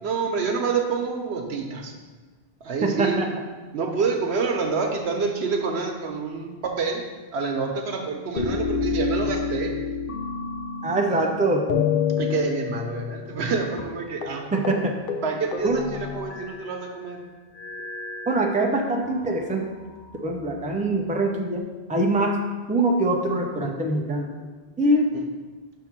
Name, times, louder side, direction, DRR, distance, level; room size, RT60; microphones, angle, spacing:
voice 1, 0.0-1.9 2.6-3.2 3.7-7.0 7.3-9.7 12.2-14.4 15.2-17.2 25.1-25.2, right 4 dB, 90° right, 3 dB, 1.1 m, -27 dB
sound 1, 8.4-11.3 11.7-13.5 13.8-13.9 14.2-14.4 14.6-14.8 15.1-16.8 17.6-19.1 19.9-20.8, left 6 dB, 60° left, 0.8 m, -29 dB
voice 2, 10.8-11.6 14.5-14.9 15.6-15.8 18.3-19.7 20.2-21.6 21.9-22.4 22.7-24.3 24.8-25.1, right 2 dB, 10° right, 1 dB, 0.5 m, -23 dB
5.9 x 3.6 x 5.9 m, 1.3 s
omnidirectional pair, 1.1 m